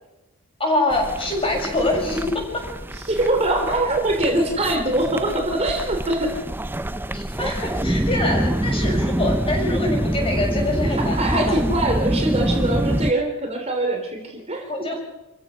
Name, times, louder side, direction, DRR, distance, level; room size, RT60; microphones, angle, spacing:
voice 1, 0.6-2.6 7.1-11.6 14.7-15.0, left 2 dB, 25° left, 0 dB, 7.2 m, -24 dB
sound 1, 0.9-13.1, right 1 dB, 10° right, 0.6 m, -26 dB
voice 2, 2.9-6.4 10.9-14.9, right 1 dB, 30° right, 2 dB, 3.2 m, -23 dB
28.5 x 15.5 x 6.3 m, 1.0 s
head